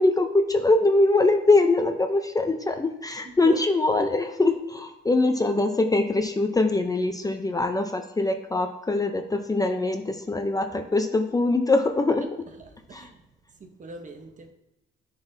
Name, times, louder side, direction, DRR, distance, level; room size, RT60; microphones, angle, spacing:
voice 1, 0.0-12.2 12.9-13.0, left 2 dB, 20° left, 5 dB, 0.5 m, -23 dB
voice 2, 3.2-3.5 12.6-13.2 13.6-14.5, right 3 dB, 40° right, 6 dB, 0.9 m, -41 dB
10.5 x 4.0 x 2.7 m, 0.94 s
cardioid pair, 90°, 20 cm